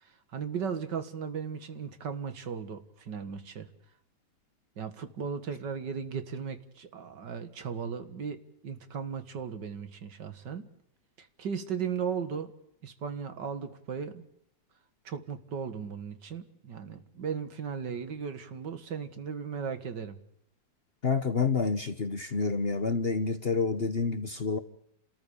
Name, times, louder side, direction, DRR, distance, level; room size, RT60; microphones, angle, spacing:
voice 1, 0.0-3.7 4.8-8.4 8.6-10.7 11.2-12.5 12.8-14.2 15.0-20.1, right 6 dB, 70° right, 11 dB, 2.4 m, -36 dB
voice 2, 21.0-24.6, left 4 dB, 40° left, 10 dB, 1.0 m, -28 dB
29.5 x 14.0 x 8.5 m, 0.77 s
omnidirectional pair, 2.0 m